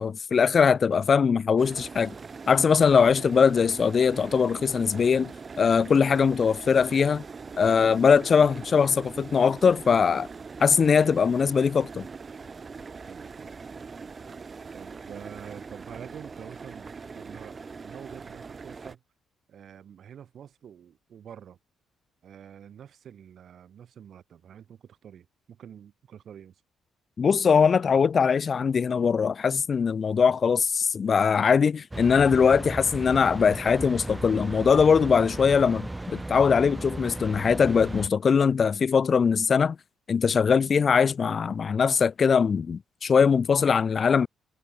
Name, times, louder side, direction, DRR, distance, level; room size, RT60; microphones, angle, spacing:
voice 1, 0.0-2.1 2.5-7.2 7.6-10.3 10.6-12.0 27.2-39.8 40.1-44.3, left 6 dB, 45° left, 0.4 m, -21 dB
sound 1, 1.6-19.0, right 5 dB, 35° right, 0.8 m, -42 dB
voice 2, 13.0-13.5 14.7-19.0 19.5-21.6 22.2-26.6, right 9 dB, 60° right, 5.1 m, -47 dB
sound 2, 31.9-38.1, right 2 dB, 10° right, 1.3 m, -36 dB
cardioid pair, 90°, 0 cm